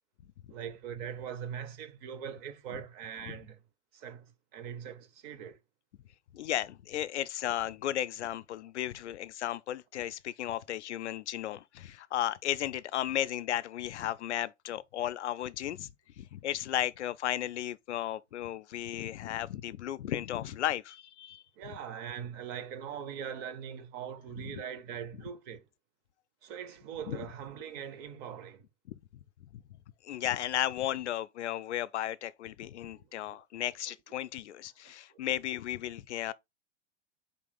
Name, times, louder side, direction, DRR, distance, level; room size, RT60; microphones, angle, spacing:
voice 1, 0.5-3.6 3.9-5.6 21.6-25.6 26.4-28.7 33.0-33.4 35.1-35.2, right 8 dB, 30° right, 0.5 m, -41 dB
voice 2, 6.3-21.8 24.4-24.6 27.1-27.3 29.5-29.6 30.0-36.3, left 12 dB, 70° left, 0.5 m, -35 dB
4.2 x 2.9 x 3.8 m
figure-of-eight pair, 95°, 37 cm